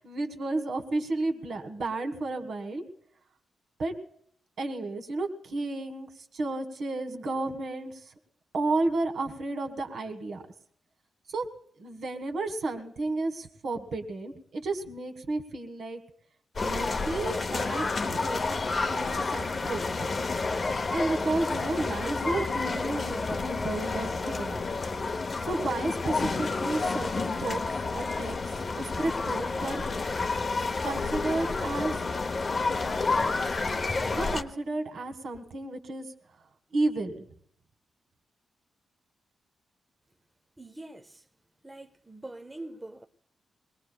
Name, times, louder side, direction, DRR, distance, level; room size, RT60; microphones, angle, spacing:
voice 1, 0.0-2.8 3.8-3.9 4.6-8.1 8.5-10.4 11.3-11.5 11.8-16.0 16.6-20.1 20.9-24.5 25.5-28.4 28.8-29.8 30.8-32.0 34.1-36.1 36.7-37.2, right 2 dB, 65° right, 1.7 m, -32 dB
sound 1, 16.6-34.4, left 3 dB, 35° left, 0.8 m, -30 dB
voice 2, 40.6-41.3 41.6-43.1, right 2 dB, 10° right, 0.6 m, -44 dB
23.0 x 19.0 x 2.3 m
wide cardioid pair, 125°, 0 cm